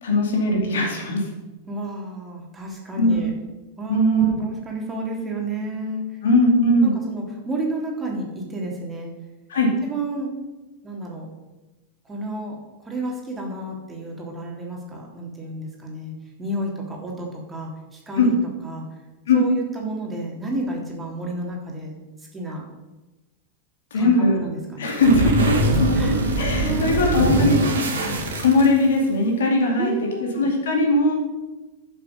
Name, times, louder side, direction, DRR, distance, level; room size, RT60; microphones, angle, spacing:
voice 1, 0.0-1.2 3.0-3.2 3.9-4.3 6.2-6.9 9.5-9.7 18.2-18.3 19.3-19.4 23.9-24.4 24.8-27.6 28.4-29.9 30.2-31.1, left 1 dB, 60° left, 1 dB, 2.3 m, -19 dB
voice 2, 1.7-3.3 3.8-6.2 6.8-9.1 9.8-10.4 10.8-11.3 12.0-16.1 16.4-18.3 18.6-18.9 19.3-21.9 22.3-22.6 23.9-25.0 25.2-25.4 25.9-26.2 26.6-27.9 29.8-30.5, right 2 dB, 15° right, -1 dB, 3.0 m, -31 dB
sound 1, 24.9-29.1, right 2 dB, 65° right, 2.2 m, -23 dB
11.5 x 7.2 x 5.2 m, 1.1 s
figure-of-eight pair, 90°, 0 cm